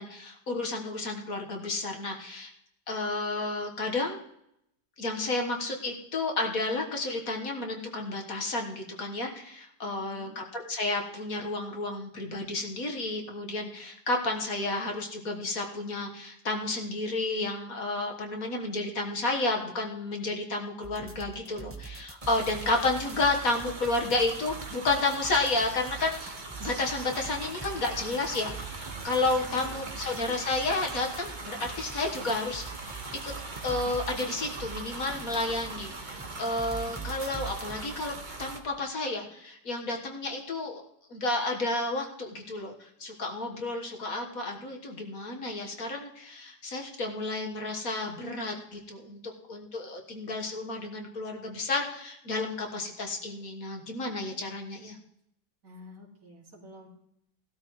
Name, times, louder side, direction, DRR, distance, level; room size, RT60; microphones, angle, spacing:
voice 1, 0.0-2.5 2.9-4.2 5.0-33.3 33.6-38.1 38.4-40.8 41.1-49.2 49.5-55.0, left 2 dB, 55° left, 2 dB, 1.8 m, -31 dB
voice 2, 9.8-10.4 29.2-29.9 55.6-56.9, left 1 dB, 55° right, -1 dB, 2.8 m, -50 dB
sound 1, 20.8-37.8, right 5 dB, 15° right, 0.6 m, -44 dB
sound 2, 22.2-38.6, right 3 dB, 30° right, 1.3 m, -41 dB
18.0 x 12.5 x 3.1 m, 0.76 s
omnidirectional pair, 1.8 m